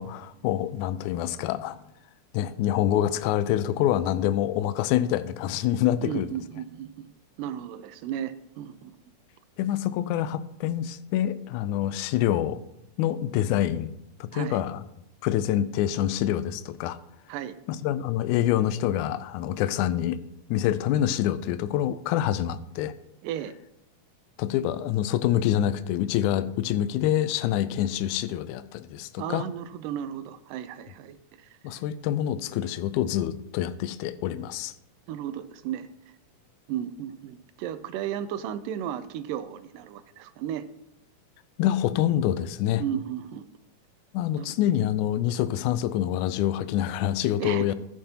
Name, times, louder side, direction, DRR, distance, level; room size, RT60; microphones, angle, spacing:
voice 1, 0.0-1.8 2.3-6.3 9.6-12.6 13.0-13.9 14.2-14.8 15.2-17.0 17.8-20.2 20.5-22.9 24.4-29.4 31.6-34.7 41.6-42.8 44.1-47.7, left 11 dB, 80° left, 13 dB, 1.9 m, -26 dB
voice 2, 6.0-7.1 7.4-8.9 14.3-14.6 17.3-17.6 23.2-23.5 29.2-31.6 35.1-35.9 36.7-40.7 42.8-43.5 44.4-44.5 47.4-47.7, right 10 dB, 90° right, 12 dB, 2.2 m, -34 dB
15.0 x 7.7 x 2.9 m, 0.81 s
omnidirectional pair, 3.7 m